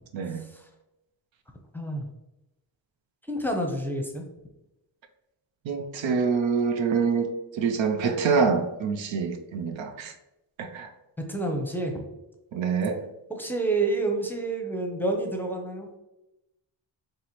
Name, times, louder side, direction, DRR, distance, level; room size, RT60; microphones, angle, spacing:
voice 1, 0.1-0.4 5.7-10.1 10.6-10.9 12.5-13.1, right 5 dB, 75° right, 7 dB, 0.6 m, -26 dB
voice 2, 1.7-2.1 3.3-4.2 11.3-12.0 13.3-15.9, right 2 dB, 5° left, 2 dB, 0.7 m, -28 dB
4.6 x 3.1 x 3.0 m, 0.93 s
cardioid pair, 70°, 46 cm